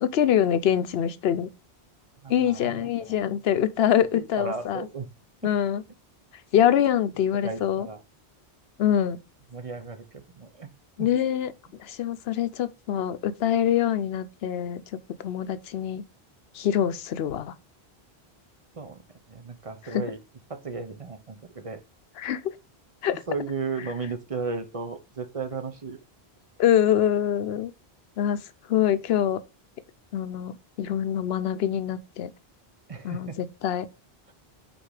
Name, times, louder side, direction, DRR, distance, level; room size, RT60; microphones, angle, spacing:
voice 1, 0.0-1.5 2.3-4.9 5.4-5.8 6.5-7.9 8.8-9.2 11.0-11.5 11.8-14.8 15.2-16.1 16.5-17.5 19.8-20.0 22.2-22.5 23.0-23.2 26.6-27.7 28.2-29.4 30.1-32.3 33.0-33.9, left 10 dB, 75° left, 0.8 m, -24 dB
voice 2, 2.2-3.1 4.1-5.1 5.4-5.5 7.4-8.0 9.5-10.7 11.0-11.1 18.7-19.0 19.3-20.2 20.5-21.8 23.3-26.0 32.9-33.4, right 4 dB, 35° right, 0.9 m, -35 dB
5.2 x 4.4 x 4.8 m
omnidirectional pair, 1.1 m